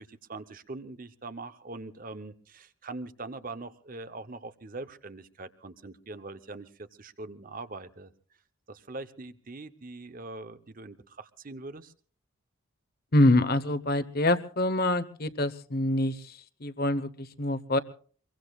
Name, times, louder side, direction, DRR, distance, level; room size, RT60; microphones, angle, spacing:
voice 1, 0.0-8.1 8.7-11.9, right 3 dB, 40° right, 12 dB, 0.8 m, -42 dB
voice 2, 13.1-17.8, left 1 dB, 45° left, 13 dB, 1.0 m, -26 dB
24.5 x 22.5 x 2.4 m, 0.43 s
head